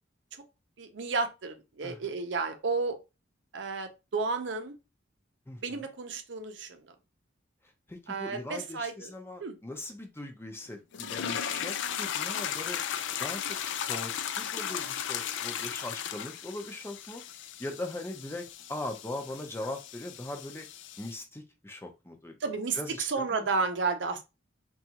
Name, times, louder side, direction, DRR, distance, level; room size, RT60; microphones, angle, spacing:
voice 1, 0.8-3.0 3.5-4.7 5.6-6.9 8.1-9.1 9.4-9.6 11.8-12.0 22.4-24.2, right 4 dB, 70° right, 0.6 m, -32 dB
voice 2, 5.5-5.8 7.9-12.8 13.2-13.6 13.9-17.2 17.6-20.7 21.0-23.5, left 1 dB, 15° left, 0.5 m, -40 dB
sound 1, 10.9-21.1, left 9 dB, 75° left, 0.4 m, -36 dB
3.8 x 2.3 x 2.8 m
head